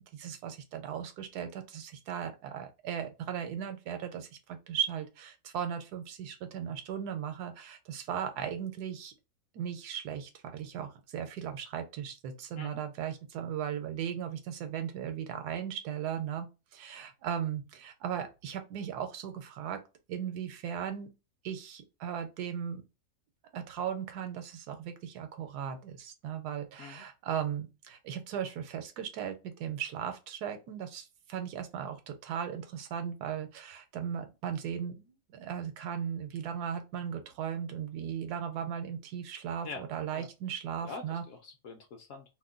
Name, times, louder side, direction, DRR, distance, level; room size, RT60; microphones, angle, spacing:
voice 1, 0.0-9.1 9.5-16.5 16.7-19.8 20.1-21.1 21.4-22.8 23.5-41.2, right 8 dB, 80° right, 1.2 m, -37 dB
voice 2, 40.8-42.2, left 4 dB, 65° left, 0.8 m, -44 dB
2.8 x 2.2 x 3.6 m
omnidirectional pair, 1.7 m